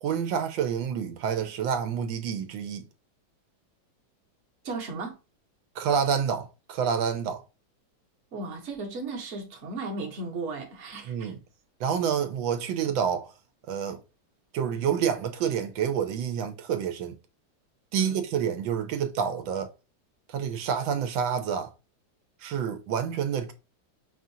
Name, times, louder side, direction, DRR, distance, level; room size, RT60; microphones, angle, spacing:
voice 1, 0.0-2.8 5.8-7.4 11.1-11.4 11.8-13.3 13.7-14.0 14.5-17.2 17.9-19.7 20.3-21.7 22.4-23.5, right 7 dB, 90° right, 1.4 m, -28 dB
voice 2, 4.6-5.2 8.3-11.3 18.0-18.2, right 3 dB, 45° right, 1.0 m, -35 dB
5.4 x 2.4 x 2.7 m
omnidirectional pair, 2.1 m